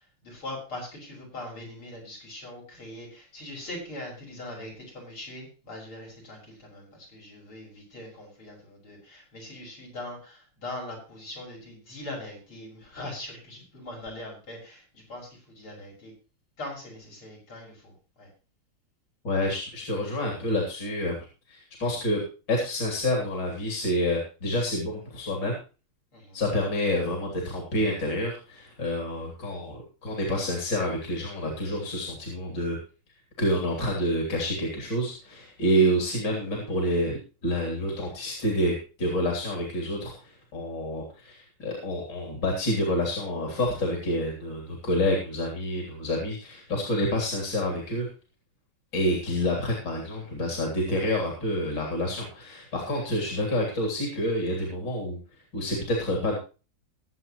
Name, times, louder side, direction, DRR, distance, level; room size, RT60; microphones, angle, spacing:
voice 1, 0.0-16.1 16.6-18.3 26.1-26.4, left 1 dB, 75° left, -2 dB, 7.2 m, -41 dB
voice 2, 19.2-21.2 21.5-22.2 22.5-25.6 26.3-32.8 33.4-48.1 48.9-55.2 55.5-56.4, equal, 55° left, 1 dB, 3.9 m, -28 dB
21.5 x 8.2 x 3.1 m, 0.33 s
omnidirectional pair, 2.4 m